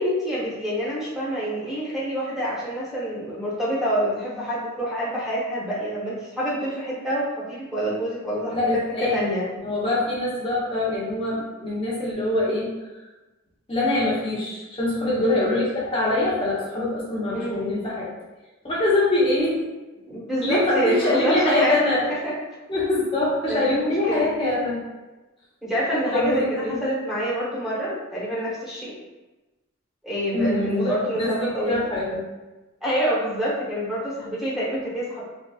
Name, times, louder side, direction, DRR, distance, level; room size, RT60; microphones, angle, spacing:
voice 1, 0.0-8.7 9.1-9.5 17.3-17.7 20.1-21.8 22.1-22.3 23.5-24.3 25.6-28.9 30.0-31.8 32.8-35.2, equal, ahead, -9 dB, 1.0 m, -27 dB
voice 2, 8.5-9.3 9.6-12.7 13.7-18.1 18.6-19.6 20.4-22.1 22.7-24.8 26.1-26.8 30.3-32.2, left 2 dB, 25° left, -6 dB, 0.9 m, -24 dB
3.8 x 2.3 x 2.3 m, 1.1 s
head